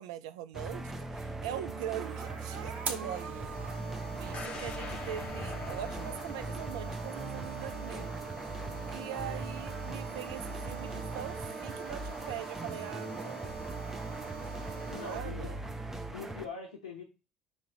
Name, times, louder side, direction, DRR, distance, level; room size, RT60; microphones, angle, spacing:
voice 1, 0.0-3.5 4.1-8.1 8.9-13.6 15.0-15.6, right 11 dB, 65° right, 0.3 m, -42 dB
sound 1, 0.5-16.5, right 2 dB, 10° right, 0.6 m, -40 dB
sound 2, 1.6-15.2, right 5 dB, 50° right, 0.7 m, -43 dB
sound 3, 4.3-8.3 8.7-8.8, left 4 dB, 40° left, 0.6 m, -45 dB
voice 2, 9.1-9.4 13.4-13.7 14.9-15.5 16.1-17.0, left 5 dB, 75° left, 0.6 m, -43 dB
3.1 x 2.7 x 3.9 m
figure-of-eight pair, 60°, 3 cm